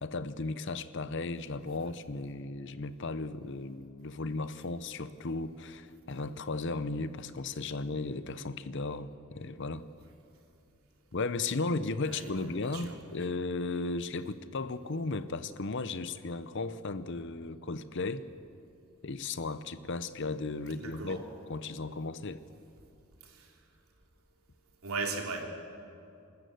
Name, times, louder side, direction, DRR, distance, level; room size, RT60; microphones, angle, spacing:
voice 1, 0.0-9.8 11.1-18.2 19.0-22.4, left 3 dB, 55° left, 13 dB, 0.8 m, -35 dB
voice 2, 12.0-13.0 20.8-21.2 23.2-23.5 24.8-25.4, right 4 dB, 75° right, 1 dB, 3.1 m, -38 dB
27.5 x 13.0 x 7.9 m, 2.6 s
head